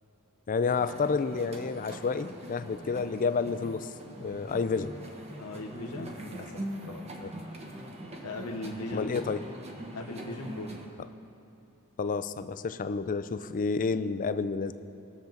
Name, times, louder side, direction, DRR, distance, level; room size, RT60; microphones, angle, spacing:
voice 1, 0.5-3.9 4.2-5.0 7.2-7.3 8.9-9.4 12.0-14.7, left 4 dB, 35° left, 12 dB, 0.4 m, -30 dB
sound 1, 0.7-10.9, right 1 dB, 30° right, 1.1 m, -42 dB
voice 2, 5.3-7.0 8.2-9.2 9.9-10.8, left 2 dB, 85° left, 1 dB, 0.9 m, -39 dB
20.0 x 7.3 x 3.9 m, 2.8 s
head